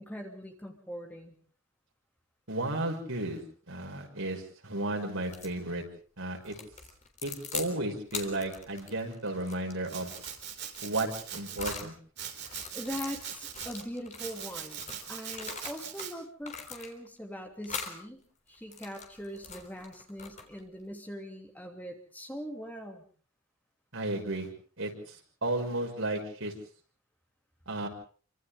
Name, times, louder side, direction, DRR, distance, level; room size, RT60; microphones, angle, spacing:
voice 1, 0.0-1.4 12.4-18.2 18.5-23.0, equal, 10° left, 3 dB, 2.9 m, -42 dB
voice 2, 2.5-3.4 3.7-5.8 6.2-6.5 7.2-10.1 10.8-11.9 23.9-24.5 24.8-26.5 27.7-27.9, right 2 dB, 75° right, 2 dB, 6.3 m, -33 dB
sound 1, 5.2-5.6 6.4-7.7 8.1-11.9 12.4-16.1 16.4-17.2 17.6-18.0 18.5-20.7, left 5 dB, 35° left, 3.7 m, -42 dB
Domestic sounds home sounds, 9.9-11.8 12.2-13.8 14.2-16.1, right 9 dB, 50° right, 4.4 m, -41 dB
29.5 x 25.0 x 3.8 m, 0.43 s
head